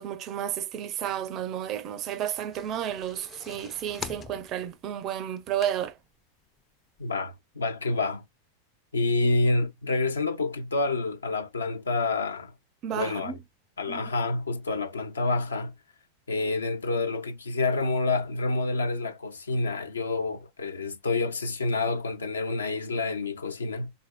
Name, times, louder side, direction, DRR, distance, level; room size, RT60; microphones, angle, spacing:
voice 1, 0.0-5.9 12.8-13.3 13.9-14.0, right 10 dB, 35° right, 0.4 m, -32 dB
sound 1, 2.2-6.1 6.6-6.7 7.0-7.1, left 7 dB, 25° left, 0.4 m, -43 dB
voice 2, 7.0-8.2 8.9-12.5 12.9-13.3 13.8-15.7 16.3-23.9, left 3 dB, 75° left, 0.6 m, -28 dB
3.9 x 2.6 x 2.2 m
figure-of-eight pair, 90°, 0 cm